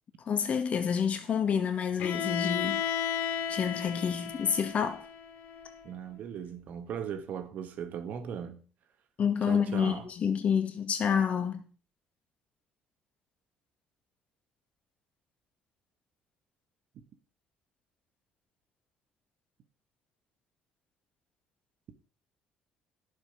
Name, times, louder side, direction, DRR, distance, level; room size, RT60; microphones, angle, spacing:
voice 1, 0.3-2.8 3.5-5.0 9.2-11.6, left 7 dB, 50° left, 2.1 m, -28 dB
Bowed string instrument, 2.0-5.9, left 8 dB, 70° left, 2.0 m, -34 dB
voice 2, 5.8-8.6 9.4-10.1, right 8 dB, 65° right, 1.6 m, -38 dB
11.0 x 7.5 x 6.0 m
supercardioid pair, 85°, 3 cm